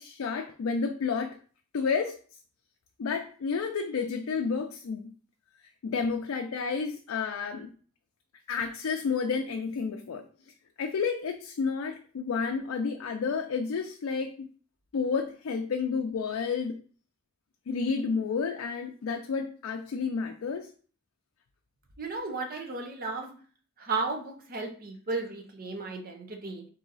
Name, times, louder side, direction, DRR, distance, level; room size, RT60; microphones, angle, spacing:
voice 1, 0.0-1.4 1.7-2.2 3.0-5.1 5.8-7.7 8.5-10.2 10.8-14.5 14.9-16.8 17.7-20.7, left 5 dB, 85° left, 4 dB, 0.4 m, -30 dB
voice 2, 22.0-23.3 23.8-26.7, right 3 dB, 45° right, 3 dB, 0.7 m, -34 dB
3.8 x 2.7 x 4.0 m, 0.43 s
head